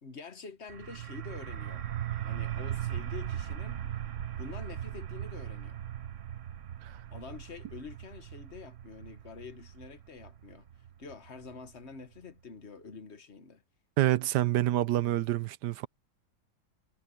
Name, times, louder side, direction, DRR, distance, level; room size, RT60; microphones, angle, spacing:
voice 1, 0.0-1.9 2.2-3.9 4.4-5.8 7.1-10.7 11.0-13.6, left 5 dB, 40° left, 1.5 m, -47 dB
sound 1, 0.7-12.2, right 11 dB, 50° right, 1.0 m, -39 dB
voice 2, 14.0-15.9, right 14 dB, 70° right, 1.2 m, -27 dB
omnidirectional pair, 2.0 m